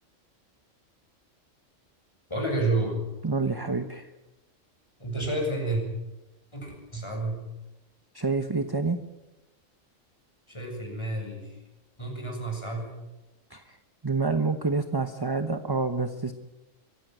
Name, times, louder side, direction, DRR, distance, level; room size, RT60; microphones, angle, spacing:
voice 1, 2.3-3.0 5.0-5.8 6.5-7.5 10.5-11.6 12.0-13.0, right 2 dB, 20° left, 1 dB, 7.2 m, -30 dB
voice 2, 3.2-4.1 8.1-9.0 13.5-13.8 14.0-16.3, right 3 dB, 20° right, 8 dB, 1.0 m, -28 dB
24.0 x 16.0 x 9.3 m, 1.0 s
omnidirectional pair, 1.3 m